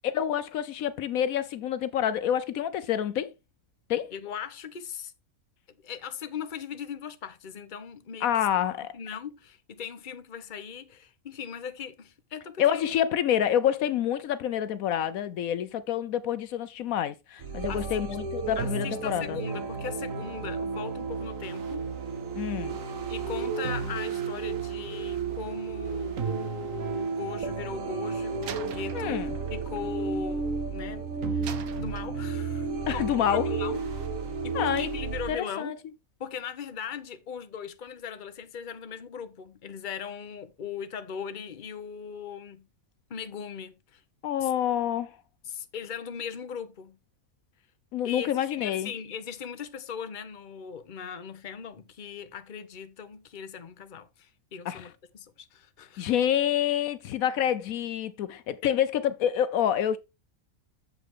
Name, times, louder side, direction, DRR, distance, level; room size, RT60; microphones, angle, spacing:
voice 1, 0.0-3.3 3.9-4.1 8.2-8.9 12.6-19.4 22.4-22.8 28.9-29.3 32.9-33.5 34.5-34.9 35.3-35.7 44.2-45.2 47.9-48.9 54.7-54.8 56.0-60.0, left 10 dB, 75° left, 1.1 m, -27 dB
voice 2, 4.1-5.1 5.7-8.5 8.9-12.9 17.7-18.2 18.5-21.8 23.1-29.2 29.5-33.8 34.3-35.8 36.2-42.7 43.1-44.0 44.4-44.5 45.4-47.0 48.0-56.1 58.6-58.8, left 7 dB, 40° left, 1.0 m, -39 dB
sound 1, 17.4-35.3, right 4 dB, 65° right, 1.6 m, -32 dB
Slam, 28.4-30.9 31.4-32.7, right 9 dB, 90° right, 1.4 m, -45 dB
8.2 x 7.5 x 3.7 m
omnidirectional pair, 1.5 m